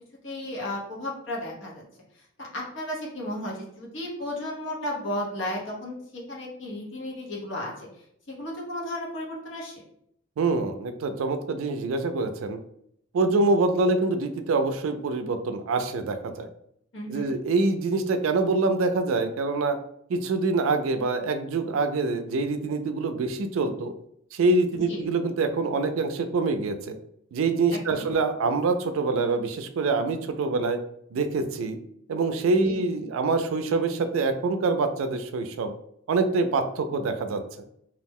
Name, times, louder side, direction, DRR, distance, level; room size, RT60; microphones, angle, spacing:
voice 1, 0.2-1.8 2.4-7.9 8.3-9.8 16.9-17.4 24.7-25.0 27.7-28.0 32.6-32.8, left 1 dB, 65° left, -2 dB, 0.8 m, -34 dB
voice 2, 10.4-12.6 13.1-16.5 17.1-19.8 20.1-23.9 24.3-27.0 27.3-30.8 31.1-31.8 32.1-35.7 36.1-37.4, right 3 dB, 80° right, 8 dB, 0.3 m, -25 dB
2.4 x 2.0 x 3.5 m, 0.72 s
head